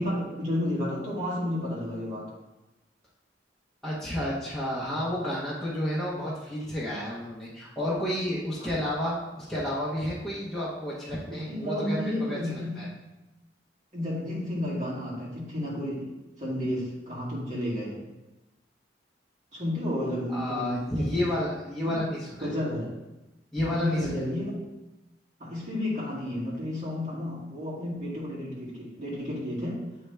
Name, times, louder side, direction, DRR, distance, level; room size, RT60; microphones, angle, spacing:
voice 1, 0.0-2.3 11.3-12.7 13.9-16.1 16.4-18.0 19.5-21.2 21.8-21.9 22.4-22.9 23.6-24.5 25.4-29.8, left 1 dB, 40° right, -7 dB, 2.1 m, -31 dB
voice 2, 3.8-12.9 20.3-22.5 23.5-24.1, left 1 dB, ahead, -8 dB, 0.9 m, -31 dB
8.6 x 3.3 x 3.3 m, 1.0 s
head